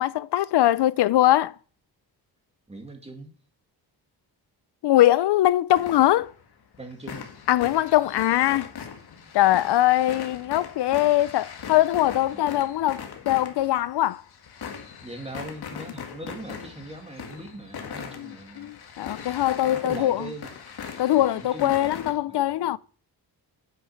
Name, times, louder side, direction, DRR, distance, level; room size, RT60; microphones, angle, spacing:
voice 1, 0.0-1.5 4.8-6.3 7.5-8.7 9.3-14.2 18.2-20.2 21.0-22.8, left 14 dB, 90° left, 0.6 m, -22 dB
voice 2, 2.7-3.3 6.8-7.3 9.1-9.3 12.3-12.5 12.7-12.8 15.0-18.7 19.5-20.6 21.1-22.7, right 2 dB, 15° right, 2.2 m, -41 dB
sound 1, 5.7-6.5 6.7-22.1, left 7 dB, 70° left, 2.0 m, -40 dB
9.5 x 7.8 x 5.7 m
wide cardioid pair, 175°, 39 cm